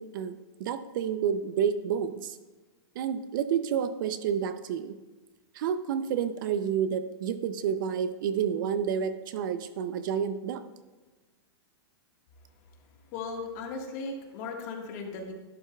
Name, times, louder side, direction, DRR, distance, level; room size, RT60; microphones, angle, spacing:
voice 1, 0.0-2.4 3.0-5.0 5.6-10.6, right 8 dB, 50° right, 12 dB, 0.5 m, -30 dB
voice 2, 13.1-15.3, left 4 dB, 40° left, 2 dB, 1.6 m, -37 dB
12.0 x 11.0 x 2.3 m, 1.3 s
supercardioid pair, 165°, 14 cm